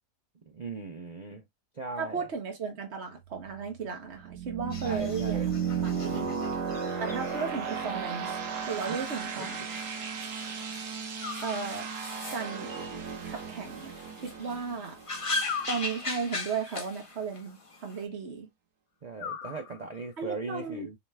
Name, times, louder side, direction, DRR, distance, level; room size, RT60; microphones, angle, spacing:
voice 1, 0.5-1.4 1.7-2.3 4.8-5.5 5.7-6.3 8.9-9.0 9.4-9.5 19.0-21.0, right 3 dB, 60° right, 0.4 m, -39 dB
voice 2, 2.0-5.6 5.8-6.4 7.0-8.3 8.7-9.6 11.4-11.9 12.3-12.7 13.2-13.9 14.2-15.0 15.7-18.5 20.2-20.9, right 5 dB, 45° right, 1.6 m, -35 dB
sound 1, 3.2-15.8, right 6 dB, 75° right, 1.6 m, -35 dB
sound 2, 4.7-18.0, left 2 dB, 25° left, 0.8 m, -40 dB
sound 3, 7.3-8.1 11.2-12.2 15.4-16.5 19.2-20.2, left 7 dB, 85° left, 1.3 m, -41 dB
4.8 x 3.1 x 3.3 m
omnidirectional pair, 1.7 m